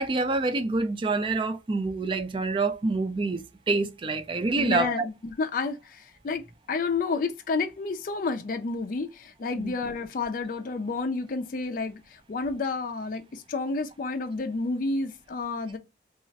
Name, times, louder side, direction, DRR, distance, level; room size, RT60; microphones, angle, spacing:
voice 1, 0.0-4.9 9.5-9.7, right 3 dB, 25° right, 0.3 m, -27 dB
voice 2, 4.6-6.4 6.7-12.0 12.3-15.8, left 3 dB, 45° left, 0.4 m, -30 dB
2.4 x 2.1 x 3.9 m
head